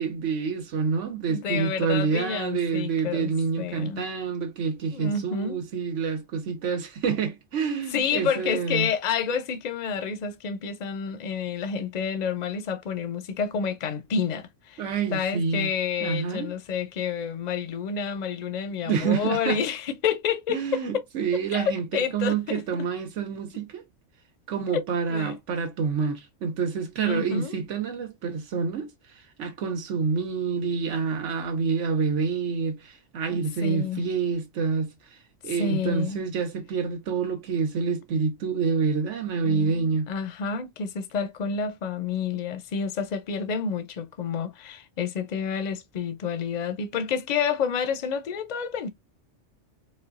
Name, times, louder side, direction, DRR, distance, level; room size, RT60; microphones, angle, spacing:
voice 1, 0.0-8.9 14.8-15.7 16.0-16.5 18.8-19.6 20.5-23.8 24.5-28.9 29.4-34.9 35.4-40.1, right 5 dB, 80° right, 1.3 m, -27 dB
voice 2, 1.2-3.3 3.6-4.0 4.9-5.6 7.9-14.8 15.1-21.0 21.5-21.6 21.9-22.8 25.1-25.4 27.0-27.6 33.6-34.0 35.6-36.2 37.6-37.7 39.4-48.9, left 6 dB, 50° left, 0.5 m, -29 dB
4.2 x 2.2 x 2.4 m
omnidirectional pair, 1.2 m